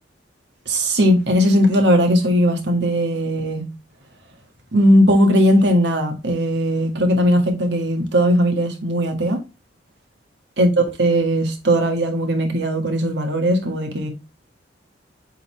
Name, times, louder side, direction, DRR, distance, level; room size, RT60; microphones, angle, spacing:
voice 1, 0.7-3.7 4.7-9.4 10.6-14.1, equal, 70° right, 2.0 m, -18 dB
8.1 x 4.0 x 3.5 m
head